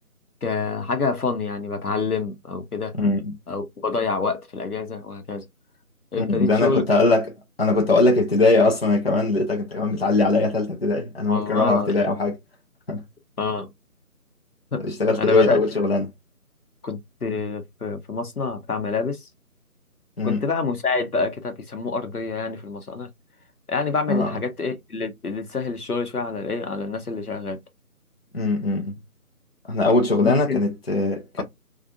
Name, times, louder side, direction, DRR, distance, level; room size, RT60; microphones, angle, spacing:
voice 1, 0.4-2.9 3.5-5.4 6.1-6.8 11.3-12.1 13.4-13.7 14.7-14.8 15.2-15.6 16.8-19.3 20.2-23.1 23.7-27.6 30.2-30.7 31.4-31.5, left 4 dB, 80° left, 1.0 m, -27 dB
voice 2, 3.0-3.3 6.2-12.4 12.9-13.0 14.8-16.1 20.2-20.4 24.1-24.3 28.3-29.0 29.7-31.4, left 3 dB, 45° left, 0.7 m, -21 dB
2.6 x 2.4 x 2.6 m
figure-of-eight pair, 160°, 45 cm